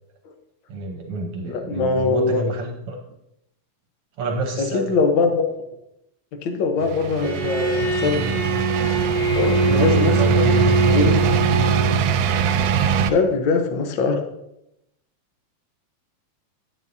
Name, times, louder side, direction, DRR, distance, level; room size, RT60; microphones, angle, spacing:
voice 1, 0.7-3.0 4.2-5.0 9.6-11.3, right 2 dB, 60° right, 2 dB, 1.6 m, -28 dB
voice 2, 1.4-2.4 4.6-5.4 6.3-8.6 9.3-10.1 10.4-11.2 13.1-14.2, left 4 dB, 70° left, 5 dB, 1.1 m, -22 dB
sound 1, 6.8-13.1, right 5 dB, 85° right, 1.9 m, -21 dB
Bowed string instrument, 7.2-12.0, right 4 dB, 40° right, 1.2 m, -23 dB
10.5 x 9.6 x 2.7 m, 0.84 s
omnidirectional pair, 3.4 m